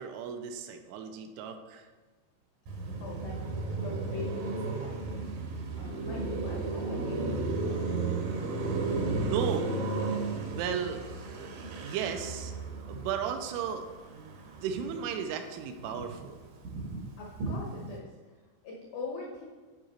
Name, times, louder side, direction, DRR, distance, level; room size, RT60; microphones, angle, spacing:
voice 1, 0.0-1.9 9.2-9.8 10.5-11.1 11.4-12.5 12.8-16.4, right 7 dB, 90° right, 6 dB, 3.1 m, -35 dB
Car passing by, 2.7-15.1 15.5-18.0, right 3 dB, 75° right, 2.1 m, -34 dB
voice 2, 3.0-3.4 3.8-5.2 5.8-7.3 7.6-7.9 8.2-8.6 11.6-11.7 17.2-18.1 18.6-19.4, left 3 dB, 75° left, -2 dB, 2.1 m, -41 dB
10.5 x 4.9 x 4.4 m, 1.3 s
omnidirectional pair, 5.5 m